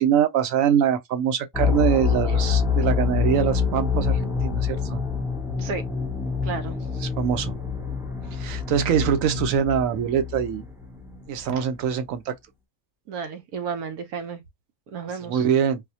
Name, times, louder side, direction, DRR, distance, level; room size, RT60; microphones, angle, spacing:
voice 1, 0.0-5.0 7.0-7.6 8.3-10.6 11.3-12.4 15.2-15.8, right 8 dB, 70° right, 1.0 m, -23 dB
sound 1, 1.5-11.4, left 6 dB, 5° right, 0.3 m, -26 dB
voice 2, 6.4-6.8 11.5-11.6 13.1-14.4 14.9-15.4, right 5 dB, 90° right, 1.3 m, -32 dB
4.1 x 2.1 x 2.7 m
omnidirectional pair, 1.5 m